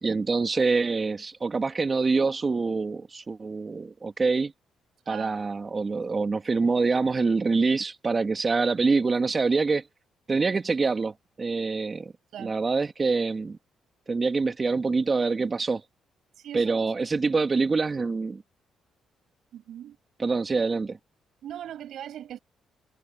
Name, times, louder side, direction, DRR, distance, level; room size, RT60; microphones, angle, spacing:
voice 1, 0.0-4.5 5.1-9.8 10.3-12.1 12.4-13.6 14.1-15.8 16.5-18.4 20.2-21.0, right 4 dB, 30° right, 2.5 m, -25 dB
voice 2, 5.1-5.4 12.3-12.6 16.4-16.8 19.5-20.0 21.4-22.4, right 10 dB, 70° right, 7.1 m, -40 dB
cardioid pair, 90°, 0 cm